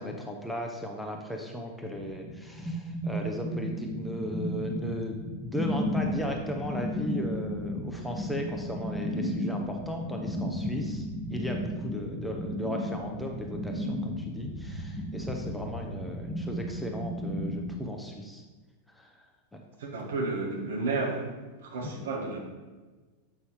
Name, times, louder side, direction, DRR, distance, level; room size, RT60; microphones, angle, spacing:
voice 1, 0.0-18.4 18.9-19.6 21.8-21.9, equal, ahead, 1 dB, 0.7 m, -36 dB
sound 1, 1.9-17.8, equal, 20° right, 1.2 m, -34 dB
voice 2, 19.8-21.2 21.6-22.4, right 3 dB, 60° right, 0 dB, 1.3 m, -31 dB
7.7 x 5.5 x 3.1 m, 1.3 s
figure-of-eight pair, 90°, 0 cm